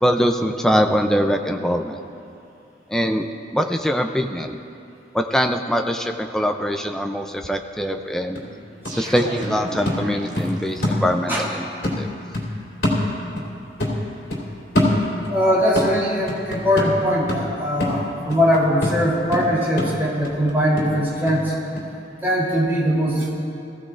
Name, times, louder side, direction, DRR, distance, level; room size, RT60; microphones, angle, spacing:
voice 1, 0.0-2.0 2.9-4.6 5.1-8.4 9.0-11.7 12.0-12.1, equal, 5° left, 4 dB, 0.5 m, -22 dB
sound 1, 7.9-8.0 8.4-11.5 11.8-13.5 13.8-15.4 15.8-21.4 21.8-21.9, left 1 dB, 65° left, 3.5 m, -25 dB
sound 2, 8.8-11.1, right 1 dB, 45° right, 1.7 m, -35 dB
voice 2, 15.3-21.5 22.2-23.3, equal, 15° right, -7 dB, 3.4 m, -21 dB
22.0 x 15.5 x 2.5 m, 2.6 s
head